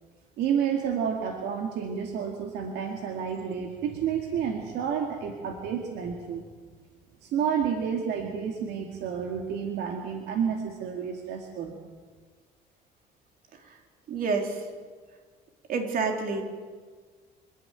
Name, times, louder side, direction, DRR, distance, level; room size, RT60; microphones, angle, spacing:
voice 1, 0.4-6.5 7.2-11.8, right 7 dB, 80° right, 2 dB, 2.1 m, -30 dB
voice 2, 14.1-14.6 15.7-16.4, right 4 dB, 55° right, 3 dB, 3.6 m, -28 dB
27.0 x 11.0 x 9.0 m, 1.5 s
cardioid pair, 110°, 17 cm